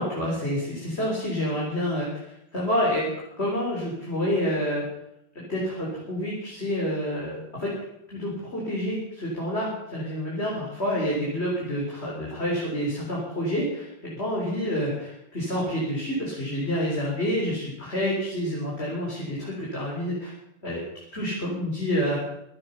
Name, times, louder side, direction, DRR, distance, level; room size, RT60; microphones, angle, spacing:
voice 1, 0.0-2.2 2.5-3.1 3.4-4.8 5.5-7.7 8.1-20.3 20.6-20.8 21.1-22.2, equal, 35° left, -5 dB, 4.3 m, -28 dB
23.5 x 8.8 x 5.8 m, 0.82 s
omnidirectional pair, 2.0 m